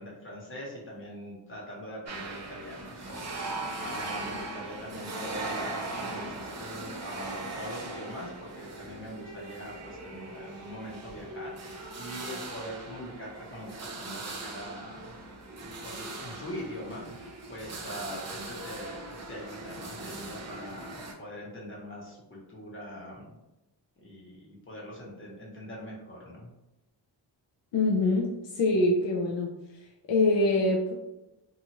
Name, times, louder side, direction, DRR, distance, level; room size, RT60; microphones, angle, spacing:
voice 1, 0.0-15.1 15.8-23.3 24.0-26.5, equal, 25° left, -4 dB, 0.9 m, -42 dB
sound 1, 2.1-21.1, right 2 dB, 35° right, 0.6 m, -39 dB
voice 2, 27.7-29.5 30.1-30.9, left 2 dB, 70° left, -2 dB, 0.6 m, -24 dB
2.7 x 2.3 x 2.9 m, 0.96 s
wide cardioid pair, 125°, 46 cm